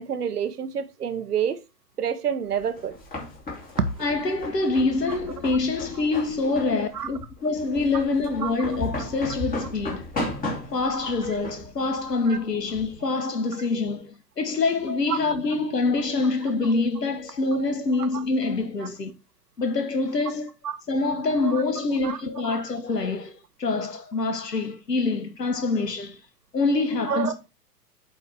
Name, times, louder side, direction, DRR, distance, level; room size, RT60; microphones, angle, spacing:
voice 1, 0.0-1.6 2.0-3.0 6.9-7.1 8.4-8.5 12.3-12.4 15.1-15.2 18.1-18.2 20.6-20.8 21.5-21.6 22.0-22.2 27.1-27.3, right 8 dB, 70° right, 1.1 m, -28 dB
sound 1, 2.5-13.0, left 2 dB, 15° left, 2.7 m, -35 dB
voice 2, 4.0-10.1 10.7-19.1 19.6-20.5 20.9-26.2 26.5-27.5, left 3 dB, 80° left, 1.5 m, -25 dB
8.3 x 3.9 x 4.6 m
figure-of-eight pair, 105°, 48 cm